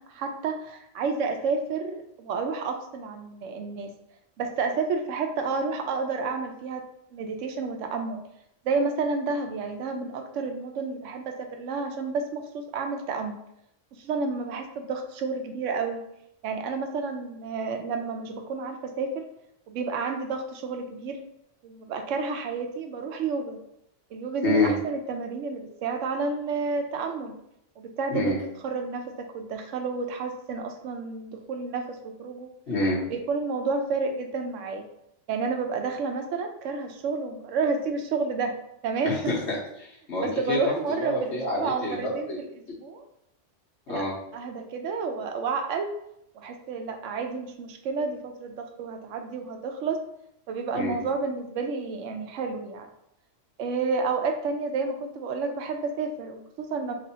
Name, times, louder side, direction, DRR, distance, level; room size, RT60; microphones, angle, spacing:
voice 1, 0.0-3.9 4.4-6.8 7.1-8.2 8.6-13.4 13.9-16.0 16.4-19.2 19.7-21.2 21.6-23.6 24.1-27.3 27.8-28.4 28.6-32.5 33.1-34.8 35.3-38.5 38.8-39.3 40.2-43.1 43.9-44.1 44.3-45.9 46.3-50.0 50.5-52.9 53.6-56.9, right 4 dB, 85° right, 6 dB, 1.0 m, -30 dB
voice 2, 24.4-24.7 28.1-28.4 32.7-33.0 39.0-40.7 41.0-42.4 43.9-44.1 50.7-50.9, left 2 dB, 65° left, -4 dB, 1.5 m, -27 dB
3.4 x 2.8 x 4.1 m, 0.76 s
omnidirectional pair, 1.3 m